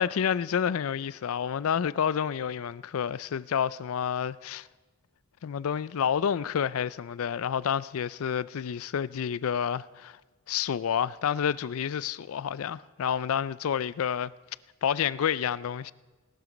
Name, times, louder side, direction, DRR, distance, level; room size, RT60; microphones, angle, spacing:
voice 1, 0.0-4.7 5.4-10.2 10.5-14.3 14.8-15.9, left 8 dB, 75° left, 0.4 m, -29 dB
18.0 x 12.5 x 5.1 m
head